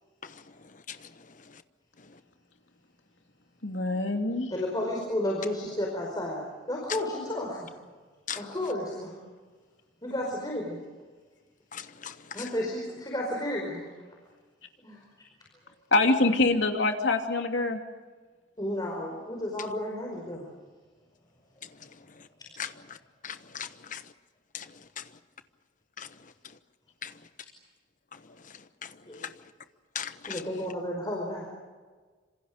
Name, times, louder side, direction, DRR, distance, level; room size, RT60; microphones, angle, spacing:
voice 1, 3.6-4.5 15.9-17.8, left 2 dB, 75° left, 2.8 m, -25 dB
voice 2, 4.5-7.7 8.3-9.2 10.0-10.8 12.3-13.9 14.8-15.0 18.6-20.5 29.1-29.3 30.3-31.5, left 1 dB, 20° left, 4.9 m, -32 dB
voice 3, 11.7-12.1 22.6-22.7 23.2-24.0 24.5-24.6 26.0-26.1 27.0-27.1 29.9-30.4, left 8 dB, 45° left, 1.1 m, -37 dB
27.0 x 27.0 x 5.2 m
head